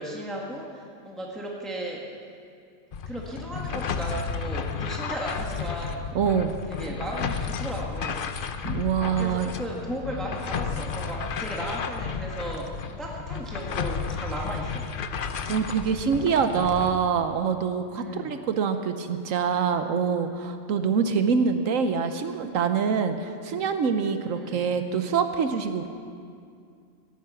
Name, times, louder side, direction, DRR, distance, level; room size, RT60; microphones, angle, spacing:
voice 1, 0.0-2.0 3.1-6.1 6.7-8.3 9.2-14.9 17.9-18.3 24.2-24.6, right 1 dB, ahead, -2 dB, 1.5 m, -35 dB
sound 1, 2.9-16.9, left 6 dB, 50° left, 0.8 m, -32 dB
voice 2, 6.1-6.5 8.6-9.5 15.5-25.9, right 6 dB, 80° right, 8 dB, 1.2 m, -25 dB
16.5 x 10.5 x 8.3 m, 2.3 s
omnidirectional pair, 1.4 m